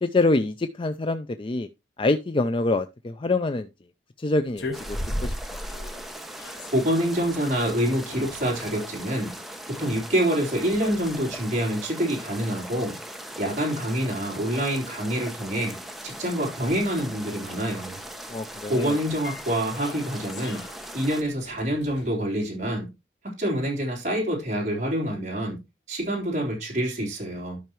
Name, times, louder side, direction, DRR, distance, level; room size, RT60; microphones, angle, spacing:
voice 1, 0.0-1.7 2.0-3.7 4.2-4.8 5.2-5.3 18.3-19.0, left 2 dB, 30° left, 0.4 m, -25 dB
sound 1, 4.4-22.1, left 1 dB, 70° left, 1.5 m, -41 dB
sound 2, 4.7-21.2, right 1 dB, ahead, 0.9 m, -40 dB
voice 2, 6.7-9.3 9.7-13.0 13.4-15.8 16.0-18.0 18.7-20.6 20.9-22.9 23.2-25.6 25.9-27.6, right 1 dB, 40° right, 3.7 m, -26 dB
12.5 x 5.7 x 3.0 m
head